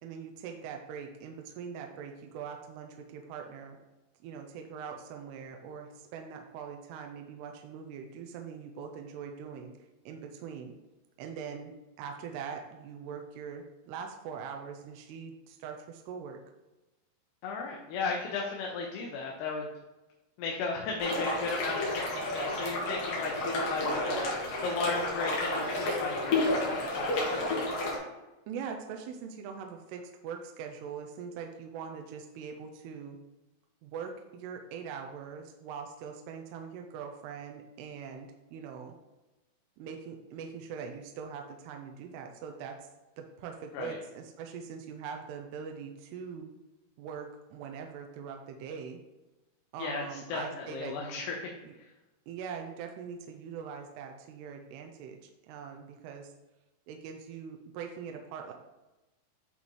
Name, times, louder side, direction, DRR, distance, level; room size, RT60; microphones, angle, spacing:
voice 1, 0.0-3.8 4.2-9.7 10.1-10.8 11.2-16.4 28.5-33.2 33.8-38.9 39.8-42.8 43.2-46.5 47.0-49.0 49.7-51.2 51.6-51.7 52.3-56.3 56.9-58.5, right 6 dB, 85° right, 3 dB, 2.5 m, -42 dB
voice 2, 17.4-19.7 20.4-27.5 43.7-43.9 49.8-51.5, left 4 dB, 75° left, 0 dB, 2.7 m, -35 dB
sound 1, 21.0-28.0, left 2 dB, 60° left, 3.0 m, -31 dB
10.5 x 4.1 x 3.1 m, 1.1 s
omnidirectional pair, 5.1 m